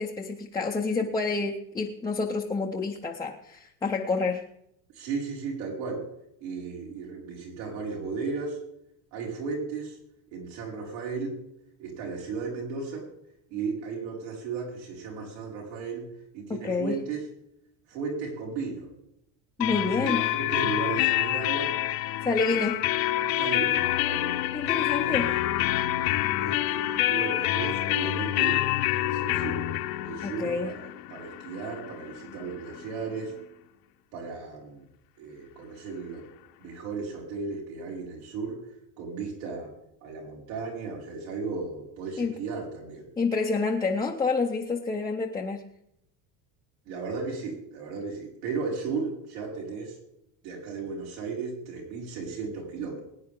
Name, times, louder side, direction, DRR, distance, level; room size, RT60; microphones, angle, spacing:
voice 1, 0.0-4.4 16.6-16.9 19.6-20.2 22.2-22.8 24.5-25.3 30.2-30.7 42.2-42.3 43.2-45.7, left 4 dB, 10° left, -2 dB, 0.4 m, -28 dB
voice 2, 4.9-6.0 6.4-8.6 9.1-10.0 10.3-11.4 11.8-13.1 13.5-16.1 16.3-17.3 17.9-18.9 19.8-21.7 22.5-22.6 23.4-24.4 25.0-25.3 26.4-29.6 30.0-33.3 34.1-34.8 35.2-36.3 36.6-38.7 39.0-39.7 40.0-43.1 46.9-50.0 50.4-53.0, right 4 dB, 90° right, -2 dB, 5.3 m, -35 dB
sound 1, 19.6-33.2, left 15 dB, 75° left, 1.0 m, -27 dB
21.0 x 9.5 x 3.7 m, 0.77 s
cardioid pair, 160°, 49 cm